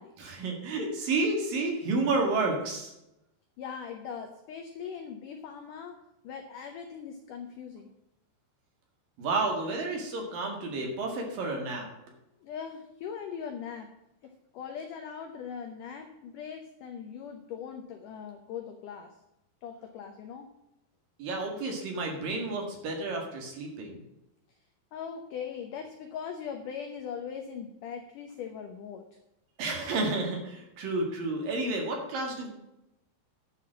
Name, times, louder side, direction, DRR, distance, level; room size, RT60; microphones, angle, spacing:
voice 1, 0.2-2.9 9.2-11.9 21.2-24.0 29.6-32.5, right 3 dB, 60° right, 1 dB, 3.5 m, -31 dB
voice 2, 3.6-6.0 6.2-7.9 12.4-13.9 14.2-19.1 19.6-20.5 24.9-29.0, left 7 dB, 80° left, 5 dB, 1.9 m, -40 dB
11.0 x 5.8 x 7.5 m, 0.88 s
omnidirectional pair, 4.9 m